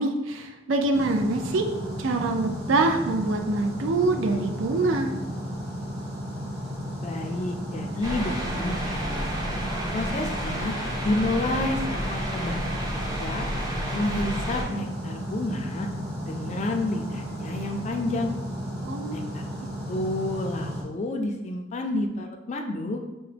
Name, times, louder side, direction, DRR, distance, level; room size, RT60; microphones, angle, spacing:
voice 1, 0.0-1.6 2.0-5.1 18.8-19.1, right 2 dB, 70° right, 4 dB, 0.4 m, -25 dB
sound 1, 0.9-20.8, equal, 55° right, 0.9 m, -34 dB
voice 2, 7.0-9.3 9.9-10.7 11.0-13.5 13.9-15.9 16.3-18.4 19.1-23.0, left 2 dB, 35° left, 3 dB, 0.3 m, -30 dB
sound 2, 8.0-14.6, equal, 20° right, 0.5 m, -31 dB
4.7 x 2.1 x 3.3 m, 1.1 s
head